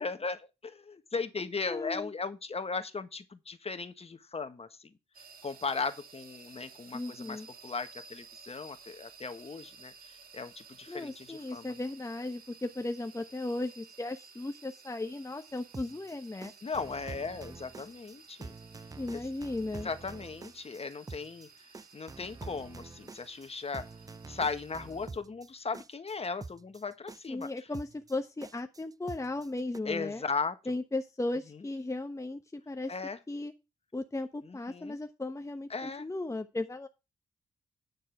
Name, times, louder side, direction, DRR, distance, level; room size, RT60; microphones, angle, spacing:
voice 1, 0.0-4.9 5.4-9.9 10.3-11.7 16.6-18.5 19.1-19.2 19.8-21.5 21.9-23.9 24.3-27.5 29.8-30.8 32.9-33.2 34.5-35.0 35.7-36.0, left 4 dB, 35° left, 1.5 m, -37 dB
voice 2, 1.7-2.1 6.9-7.5 10.9-16.5 19.0-19.9 27.3-30.2 30.7-32.9 33.3-33.5 33.9-36.9, left 2 dB, 20° left, 1.0 m, -36 dB
sound 1, 5.1-25.1, right 5 dB, 60° right, 1.8 m, -55 dB
sound 2, 15.6-29.8, right 3 dB, 20° right, 0.5 m, -47 dB
9.7 x 6.5 x 4.7 m
hypercardioid pair, 45°, 17 cm